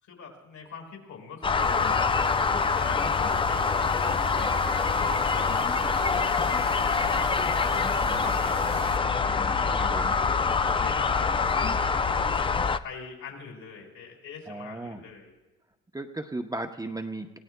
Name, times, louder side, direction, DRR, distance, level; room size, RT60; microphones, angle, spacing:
voice 1, 0.0-10.4 10.8-12.3 12.8-15.3, left 5 dB, 70° left, 0 dB, 5.0 m, -42 dB
sound 1, 1.4-12.8, left 5 dB, 20° left, 0.3 m, -25 dB
sound 2, 1.6-9.0, right 10 dB, 60° right, 0.6 m, -42 dB
voice 2, 7.8-8.3 9.9-10.1 14.5-15.0 15.9-17.4, right 2 dB, 10° right, 4 dB, 0.7 m, -36 dB
28.5 x 16.0 x 2.2 m, 1.1 s
cardioid pair, 90°, 30 cm